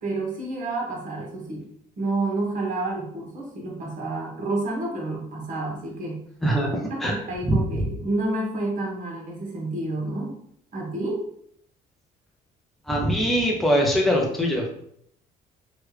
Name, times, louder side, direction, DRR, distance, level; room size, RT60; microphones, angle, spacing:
voice 1, 0.0-1.6 2.0-6.3 6.9-10.4 10.7-11.2, right 2 dB, 50° right, -2 dB, 1.2 m, -29 dB
voice 2, 6.4-7.2 7.5-7.9 12.8-14.7, equal, ahead, -1 dB, 0.6 m, -22 dB
3.1 x 2.3 x 3.2 m, 0.69 s
cardioid pair, 110°, 17 cm